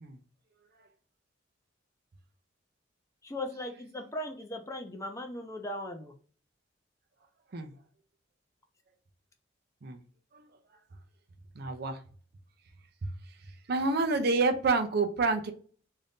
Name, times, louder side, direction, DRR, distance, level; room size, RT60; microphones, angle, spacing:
voice 1, 3.2-6.1, left 1 dB, 15° left, 4 dB, 0.4 m, -38 dB
voice 2, 11.6-12.0 13.0-13.1 13.7-15.5, right 3 dB, 55° right, 7 dB, 0.5 m, -28 dB
2.7 x 2.5 x 3.4 m, 0.41 s
head